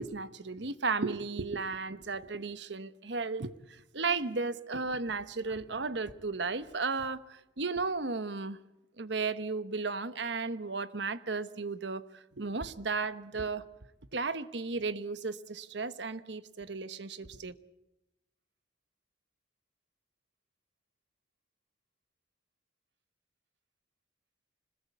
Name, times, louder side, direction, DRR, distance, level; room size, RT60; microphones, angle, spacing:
voice 1, 0.0-8.6 9.0-13.6 14.1-17.5, right 4 dB, 65° right, 1.1 m, -34 dB
26.5 x 20.5 x 8.4 m
head